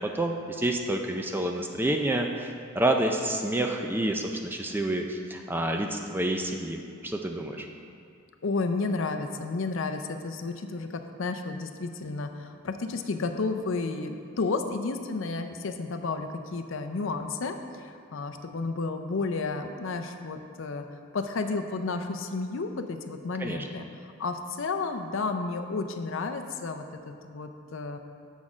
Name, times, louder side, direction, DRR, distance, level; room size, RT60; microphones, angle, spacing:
voice 1, 0.0-7.7 23.4-23.7, right 1 dB, 10° right, 3 dB, 0.3 m, -28 dB
voice 2, 8.4-20.9 21.1-28.0, left 3 dB, 60° left, 6 dB, 0.5 m, -32 dB
7.2 x 6.3 x 5.0 m, 2.4 s
head